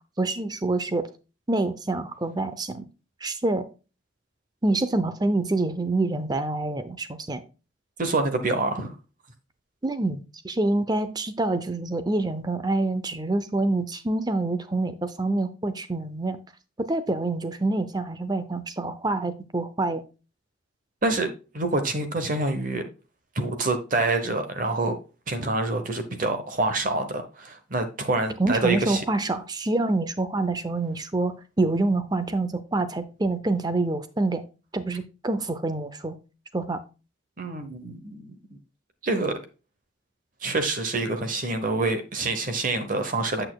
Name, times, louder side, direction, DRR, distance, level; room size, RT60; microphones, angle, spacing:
voice 1, 0.2-1.1 1.5-2.8 3.2-3.7 4.6-7.4 9.8-10.2 10.4-16.4 16.9-20.0 28.4-34.4 34.7-36.2 36.5-36.8, right 2 dB, 20° right, 0.6 m, -26 dB
voice 2, 8.0-8.9 21.0-22.8 23.3-25.0 25.3-29.0 37.4-38.4 39.0-39.3 40.4-43.4, right 2 dB, 40° right, 1.0 m, -26 dB
8.4 x 6.6 x 2.3 m
head